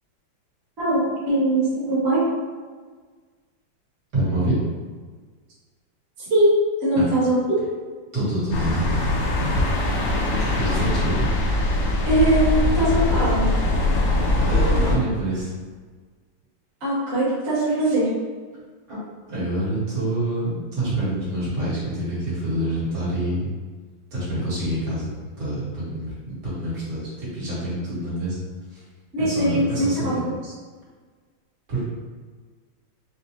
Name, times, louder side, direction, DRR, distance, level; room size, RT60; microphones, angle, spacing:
voice 1, 0.8-2.2 6.3-6.5 6.8-7.6 12.0-13.5 16.8-18.1 29.1-30.2, right 1 dB, 40° right, -9 dB, 1.2 m, -21 dB
voice 2, 4.1-4.7 7.0-7.1 8.1-11.2 13.7-13.9 14.4-15.5 18.9-19.0 19.3-23.5 24.1-25.1 25.4-28.4 28.7-28.8 29.2-30.2 31.7-31.8, right 1 dB, 60° right, -9 dB, 1.9 m, -27 dB
sound 1, 8.5-15.0, left 2 dB, 70° left, 1.2 m, -22 dB
4.9 x 2.0 x 2.8 m, 1.5 s
omnidirectional pair, 2.1 m